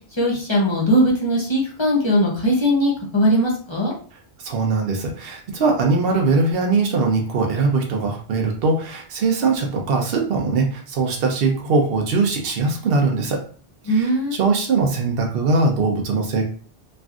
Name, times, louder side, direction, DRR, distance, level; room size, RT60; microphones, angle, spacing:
voice 1, 0.2-3.9 13.9-14.4, equal, 30° left, -3 dB, 0.6 m, -19 dB
voice 2, 4.4-13.4 13.8-16.4, right 3 dB, 60° right, 2 dB, 0.9 m, -21 dB
3.2 x 2.5 x 2.4 m, 0.43 s
omnidirectional pair, 1.2 m